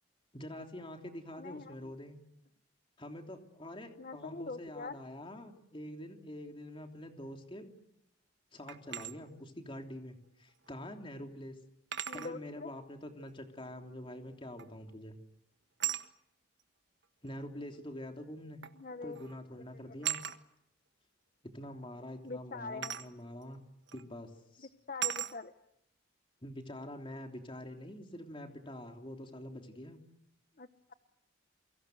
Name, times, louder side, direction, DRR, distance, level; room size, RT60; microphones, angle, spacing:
voice 1, 0.3-2.2 3.0-7.7 8.5-11.6 12.1-15.2 17.2-18.6 19.0-20.2 21.5-23.6 23.9-24.7 26.4-30.0, left 1 dB, 25° left, 4 dB, 3.2 m, -46 dB
voice 2, 1.4-1.9 4.0-5.0 12.1-12.7 18.7-19.3 19.7-20.0 22.2-23.0 24.6-25.5 30.6-30.9, left 3 dB, 45° left, 10 dB, 1.0 m, -44 dB
sound 1, 8.7-9.1 10.7-10.8 11.9-12.3 14.6-14.9 15.8-16.1 17.3-17.4 18.6-18.8 19.1-19.4 20.0-20.4 22.8-23.1 23.9-24.0 25.0-25.3, right 10 dB, 60° right, 1.6 m, -37 dB
29.0 x 23.5 x 7.9 m, 0.76 s
head